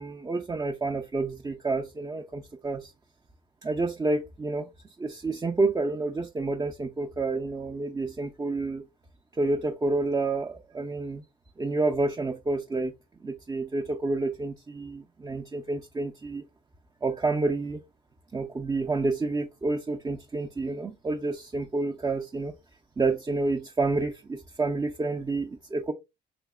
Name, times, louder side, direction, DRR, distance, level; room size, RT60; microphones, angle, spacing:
voice 1, 0.0-2.9 3.6-4.7 5.0-8.8 9.3-11.2 11.6-12.9 13.2-16.4 17.0-17.8 18.3-22.5 23.0-25.9, right 3 dB, 20° right, 0.4 m, -29 dB
4.1 x 2.8 x 2.2 m
cardioid pair, 90°, 20 cm